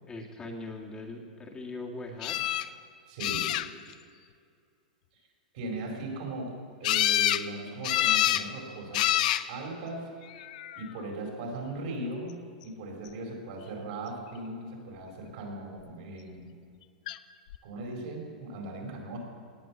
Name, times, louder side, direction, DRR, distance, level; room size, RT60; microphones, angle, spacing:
voice 1, 0.0-2.4, left 2 dB, 20° left, -1 dB, 2.0 m, -40 dB
sound 1, 2.2-2.7 3.2-3.9 6.8-7.4 7.8-8.5 8.9-9.4 10.4-10.8 17.1-17.2 17.5-17.6, left 13 dB, 60° left, 0.6 m, -26 dB
voice 2, 3.1-3.5 5.5-6.5 6.8-10.5 10.8-16.5 17.6-19.2, right 2 dB, 65° right, 1 dB, 4.8 m, -38 dB
18.0 x 9.0 x 7.3 m, 2.3 s
hypercardioid pair, 115°, 5 cm